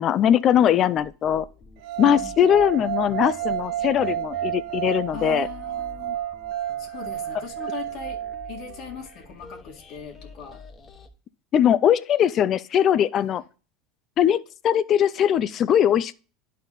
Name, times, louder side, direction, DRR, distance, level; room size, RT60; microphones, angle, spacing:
voice 1, 0.0-1.5 2.0-5.5 11.5-13.4 14.2-16.1, left 9 dB, 40° left, 0.5 m, -20 dB
sound 1, 1.1-11.1, left 4 dB, 25° left, 1.2 m, -47 dB
sound 2, 1.8-8.9, right 12 dB, 65° right, 0.9 m, -31 dB
voice 2, 2.0-2.6 5.1-6.2 6.8-8.2 8.5-10.6 13.2-13.4, left 7 dB, 60° left, 2.0 m, -40 dB
10.5 x 4.2 x 4.0 m
supercardioid pair, 115°, 0 cm